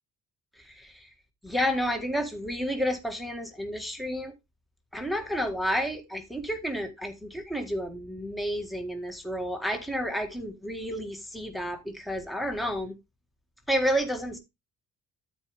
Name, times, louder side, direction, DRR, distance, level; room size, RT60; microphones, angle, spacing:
voice 1, 0.6-1.1 1.4-4.3 4.9-12.9 13.7-14.4, equal, ahead, 1.6 m, -30 dB
13.0 x 4.7 x 3.4 m
cardioid pair, 90°, 30 cm